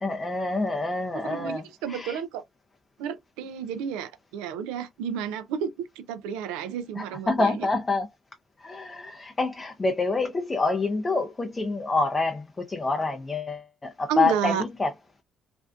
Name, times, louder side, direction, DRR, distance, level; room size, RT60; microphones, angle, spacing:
voice 1, 0.0-2.2 7.0-8.1 8.6-14.9, left 3 dB, 30° left, 0.4 m, -27 dB
voice 2, 1.3-2.4 3.0-7.7 14.1-14.6, right 7 dB, 90° right, 0.3 m, -31 dB
2.5 x 2.1 x 2.4 m
supercardioid pair, 65°, 0 cm